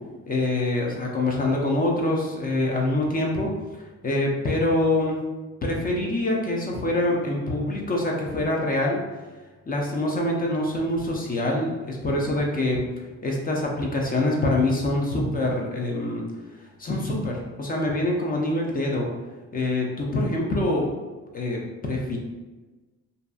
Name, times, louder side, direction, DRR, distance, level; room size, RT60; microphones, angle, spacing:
voice 1, 0.3-3.5 4.0-5.2 5.6-9.0 9.7-12.8 13.2-16.2 16.8-19.1 19.5-20.9 21.3-22.2, left 1 dB, 30° left, -1 dB, 0.5 m, -25 dB
2.6 x 2.4 x 2.3 m, 1.2 s
cardioid pair, 90°, 30 cm